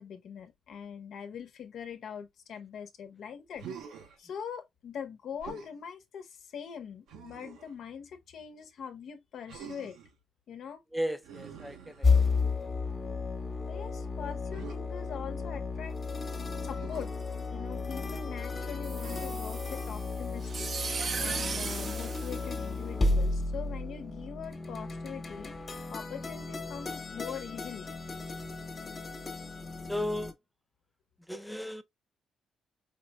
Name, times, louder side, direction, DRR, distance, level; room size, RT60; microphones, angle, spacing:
voice 1, 0.0-3.6 4.2-10.0 10.5-10.8 13.7-16.0 16.6-17.1 17.4-20.7 21.2-25.5 25.9-27.9, left 7 dB, 70° left, 0.9 m, -42 dB
Human voice, 3.5-4.2 5.4-5.8 7.1-7.7 9.5-10.1 11.2-12.5 14.5-14.8 16.7-17.1 19.0-19.6 21.1-21.7, right 7 dB, 85° right, 0.9 m, -47 dB
voice 2, 10.9-12.1 12.3-12.7 29.9-30.3 31.3-31.8, equal, ahead, 0.6 m, -35 dB
sound 1, 12.0-30.3, left 3 dB, 35° left, 1.1 m, -33 dB
sound 2, 18.8-23.2, right 5 dB, 45° right, 0.5 m, -37 dB
5.0 x 3.0 x 2.2 m
cardioid pair, 90°, 0 cm